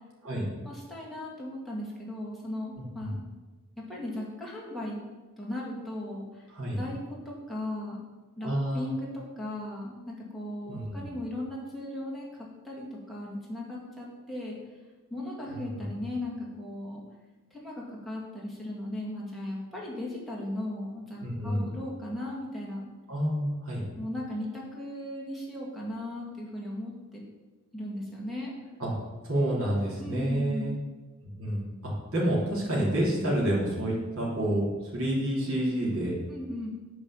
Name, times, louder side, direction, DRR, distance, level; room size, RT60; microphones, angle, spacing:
voice 1, 0.6-3.2 3.8-5.0 5.4-6.5 6.8-7.0 7.3-8.0 8.4-9.1 9.4-14.6 15.1-17.0 17.5-22.8 24.0-27.2 27.7-28.5 30.0-30.7 36.3-36.7, left 1 dB, ahead, -5 dB, 2.2 m, -37 dB
voice 2, 2.8-3.1 6.5-6.8 8.4-8.9 10.7-11.0 15.5-15.8 21.2-21.7 23.1-23.8 28.8-28.9 29.2-30.7 31.2-36.1, right 1 dB, 75° right, -5 dB, 3.0 m, -29 dB
9.1 x 4.8 x 7.3 m, 1.2 s
head